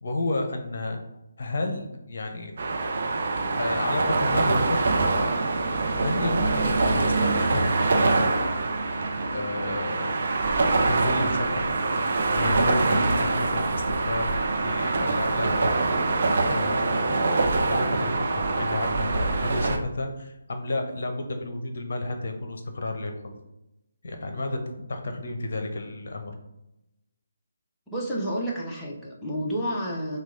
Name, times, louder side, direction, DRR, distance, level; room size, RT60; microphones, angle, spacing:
voice 1, 0.0-1.0 1.4-2.5 3.6-4.8 5.7-7.7 8.0-8.3 9.3-10.2 10.9-11.7 12.3-14.3 14.6-15.8 16.4-23.2 24.0-26.3, left 2 dB, 55° left, 5 dB, 0.8 m, -31 dB
sound 1, 2.6-19.8, right 3 dB, 50° right, 0.7 m, -24 dB
voice 2, 27.9-30.2, equal, 5° left, -6 dB, 0.9 m, -30 dB
6.0 x 2.3 x 3.8 m, 0.90 s
figure-of-eight pair, 150°, 0 cm